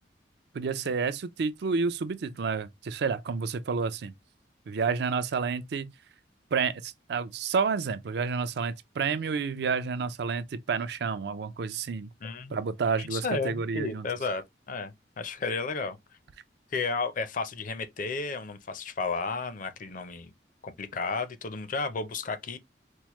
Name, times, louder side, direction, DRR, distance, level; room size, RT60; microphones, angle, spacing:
voice 1, 0.5-4.1 4.7-5.9 6.5-12.1 12.5-14.1, right 5 dB, 65° right, 0.4 m, -30 dB
voice 2, 12.2-12.6 13.0-16.0 16.7-20.3 20.6-22.6, left 4 dB, 50° left, 0.5 m, -33 dB
4.5 x 2.1 x 2.9 m
head